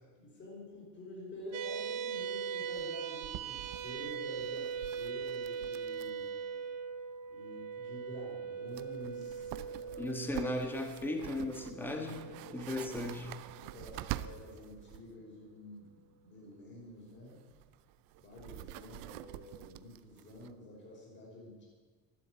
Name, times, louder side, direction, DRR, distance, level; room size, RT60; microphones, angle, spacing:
voice 1, 0.2-6.3 7.3-10.2 12.5-12.9 13.6-17.5 18.2-21.7, left 1 dB, 25° left, -3 dB, 5.6 m, -49 dB
sound 1, 1.5-14.2, right 6 dB, 40° right, 1.1 m, -41 dB
sound 2, 1.5-1.6 1.7-1.8 2.1-2.3 2.7-6.3 6.5-6.6 8.3-8.4 8.7-15.1 16.9-20.6, right 15 dB, 55° right, 0.7 m, -47 dB
voice 2, 10.0-12.2 12.5-13.3, left 1 dB, 5° left, 3 dB, 1.5 m, -36 dB
13.5 x 12.0 x 8.2 m, 1.4 s
cardioid pair, 170°, 41 cm